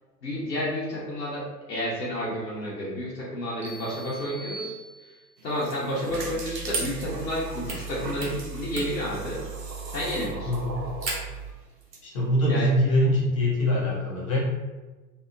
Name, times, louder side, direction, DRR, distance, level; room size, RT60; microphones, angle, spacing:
voice 1, 0.2-4.7 5.0-5.1 5.4-9.4 9.9-10.5 12.5-12.7, equal, 90° left, -7 dB, 0.8 m, -30 dB
sound 1, 3.6-5.5, right 3 dB, 40° right, 0.7 m, -43 dB
sound 2, 5.4-12.0, right 3 dB, 85° right, 0.6 m, -41 dB
sound 3, 6.1-11.5, right 4 dB, 60° right, 1.0 m, -36 dB
voice 2, 10.5-10.8 12.0-14.4, left 1 dB, 25° left, -6 dB, 0.3 m, -23 dB
2.7 x 2.1 x 2.3 m, 1.2 s
figure-of-eight pair, 100°, 49 cm